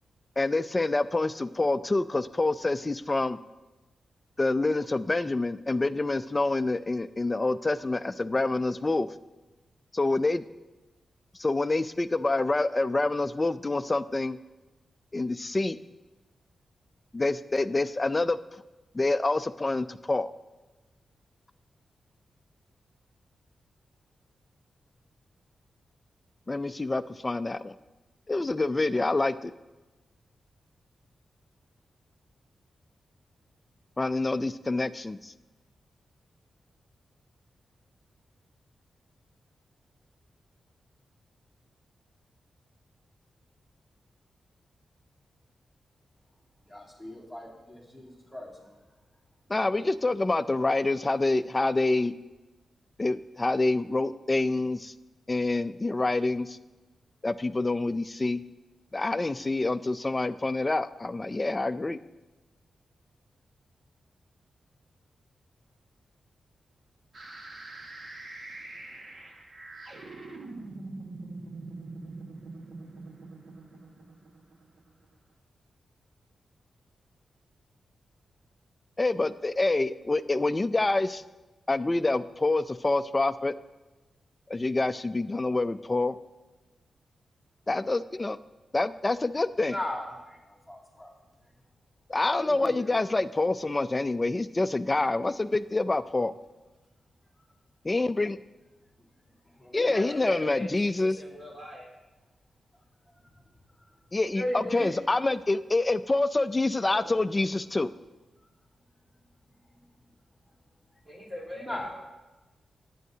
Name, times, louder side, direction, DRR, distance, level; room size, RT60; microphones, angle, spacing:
voice 1, 0.4-3.4 4.4-9.1 9.9-10.4 11.4-14.4 15.1-15.8 17.1-18.4 18.9-20.3 26.5-27.7 28.3-29.5 34.0-35.3 49.5-52.1 53.0-54.9 55.3-56.6 57.2-58.4 58.9-62.0 79.0-81.2 81.7-83.5 84.5-86.2 87.7-88.4 88.7-89.8 92.1-96.3 97.8-98.4 99.7-101.2 104.1-107.9, left 2 dB, 20° left, 12 dB, 0.4 m, -27 dB
voice 2, 46.7-48.7 89.7-91.1 92.4-92.9 99.6-100.4 104.4-104.9 106.9-107.1 111.6-111.9, left 1 dB, 5° right, -4 dB, 2.5 m, -37 dB
sound 1, 67.1-75.0, right 2 dB, 55° right, 1.5 m, -44 dB
voice 3, 99.9-101.9 111.0-111.9, left 1 dB, 30° right, -4 dB, 3.9 m, -41 dB
18.5 x 9.2 x 2.8 m, 1.1 s
wide cardioid pair, 120°, 0 cm